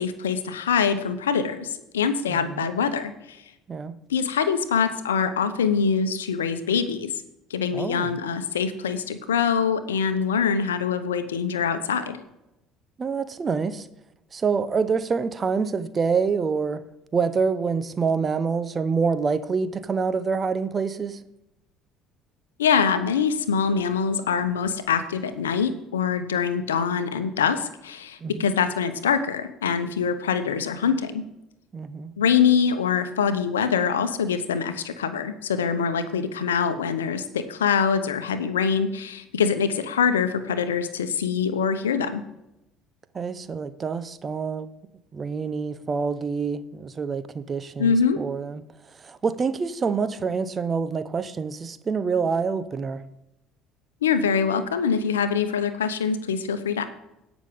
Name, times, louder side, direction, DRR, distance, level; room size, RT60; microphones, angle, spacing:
voice 1, 0.0-3.4 4.1-7.1 7.5-12.2 22.6-31.3 32.2-42.2 47.8-48.2 54.0-56.9, left 6 dB, 90° left, 0.8 m, -24 dB
voice 2, 2.3-2.7 3.7-3.9 7.7-8.1 13.0-13.9 14.3-16.8 17.1-21.2 28.2-28.5 31.7-32.1 43.1-44.7 45.1-48.6 48.9-53.0, right 5 dB, 35° right, 0.9 m, -26 dB
17.5 x 6.1 x 3.6 m
hypercardioid pair, 65°, 0 cm